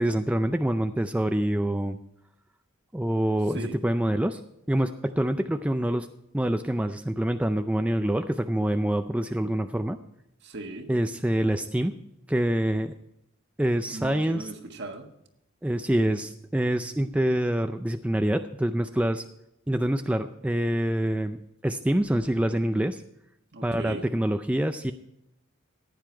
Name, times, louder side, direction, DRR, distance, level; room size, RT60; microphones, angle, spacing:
voice 1, 0.0-2.0 2.9-4.4 4.7-6.1 6.3-10.0 10.9-11.9 12.3-13.0 13.6-14.5 15.6-19.2 19.7-23.0 23.6-24.9, right 1 dB, 5° right, 7 dB, 0.4 m, -26 dB
voice 2, 10.4-10.9 13.9-15.1 23.5-24.0, right 2 dB, 55° right, 5 dB, 1.6 m, -38 dB
15.0 x 9.7 x 4.5 m, 0.80 s
head